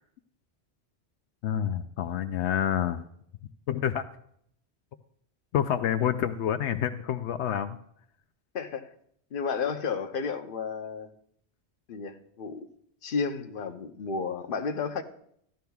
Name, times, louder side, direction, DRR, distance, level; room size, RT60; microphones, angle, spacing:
voice 1, 1.4-3.0 3.7-4.0 5.5-7.8, left 9 dB, 80° left, 0.9 m, -28 dB
voice 2, 8.5-8.9 9.3-11.1 11.9-12.6 13.0-15.0, left 5 dB, 55° left, 1.0 m, -32 dB
14.5 x 11.5 x 2.3 m
omnidirectional pair, 1.1 m